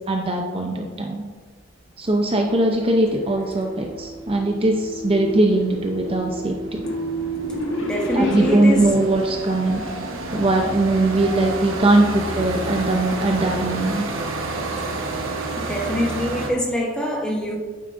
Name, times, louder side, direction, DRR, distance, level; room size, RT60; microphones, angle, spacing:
voice 1, 0.1-1.2 2.0-6.6 8.1-9.8 10.3-14.0, right 2 dB, 25° right, 2 dB, 0.6 m, -20 dB
sound 1, 2.3-9.1, right 1 dB, 65° left, 1.3 m, -31 dB
sound 2, 2.3-2.4 2.6-16.5, right 2 dB, 75° right, 1.2 m, -31 dB
voice 2, 7.8-8.9 15.6-17.6, left 1 dB, 5° left, -1 dB, 1.0 m, -24 dB
9.1 x 7.5 x 2.6 m, 1.4 s
head